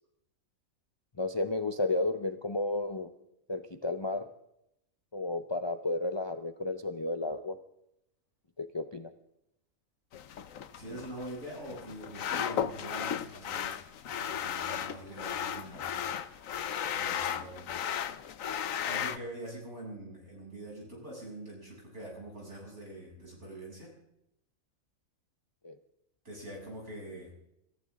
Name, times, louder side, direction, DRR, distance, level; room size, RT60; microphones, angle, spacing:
voice 1, 1.2-3.1 3.5-4.3 5.1-7.6 8.6-9.1 25.6-25.7, left 2 dB, 25° left, 8 dB, 0.7 m, -32 dB
sound 1, 10.1-19.2, left 9 dB, 75° left, 1.2 m, -35 dB
voice 2, 10.7-16.0 16.9-17.7 18.8-23.9 26.2-27.3, right 1 dB, 55° right, -3 dB, 8.1 m, -44 dB
27.5 x 14.5 x 3.7 m, 0.81 s
omnidirectional pair, 1.4 m